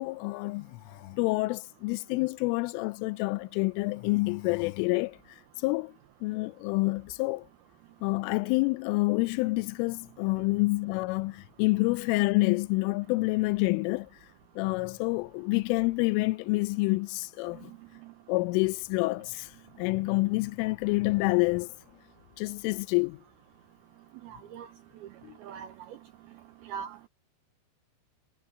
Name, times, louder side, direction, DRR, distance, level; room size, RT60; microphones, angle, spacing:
voice 1, 0.0-5.2 5.6-5.9 6.2-7.5 8.0-14.1 14.6-17.7 18.3-19.5 19.8-21.7 22.4-23.2 25.2-25.3, left 24 dB, 85° left, 3.1 m, -28 dB
voice 2, 24.2-24.7 25.4-25.7 26.6-27.1, right 7 dB, 80° right, 2.2 m, -40 dB
omnidirectional pair, 5.6 m